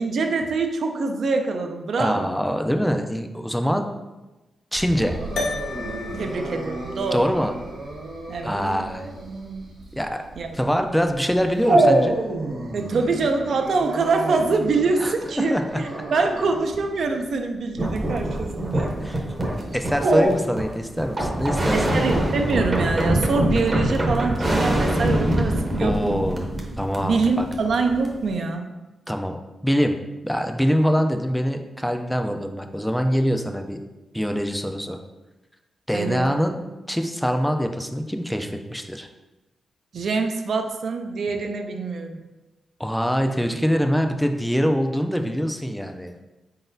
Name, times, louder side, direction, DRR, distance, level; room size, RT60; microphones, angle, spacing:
voice 1, 0.0-2.3 6.1-7.3 8.3-8.5 10.4-10.5 12.7-19.2 21.7-26.2 27.0-28.7 35.9-36.4 39.9-42.2, right 4 dB, 65° right, 4 dB, 0.4 m, -25 dB
voice 2, 2.0-3.9 4.7-5.2 7.1-7.5 8.4-9.1 9.9-10.2 10.5-12.2 15.0-15.8 19.0-19.2 19.7-22.0 25.8-26.5 26.8-27.5 29.1-29.4 29.6-30.0 30.2-33.8 34.1-35.0 35.9-36.6 36.9-39.1 42.8-46.1, equal, ahead, 5 dB, 0.4 m, -24 dB
Dog, 4.7-20.3, right 2 dB, 85° right, 1.5 m, -27 dB
sound 1, 5.4-9.9, left 3 dB, 80° left, 0.7 m, -35 dB
sound 2, 17.8-28.3, right 1 dB, 30° right, 0.8 m, -24 dB
4.5 x 3.9 x 2.6 m, 1.1 s
wide cardioid pair, 115°, 0 cm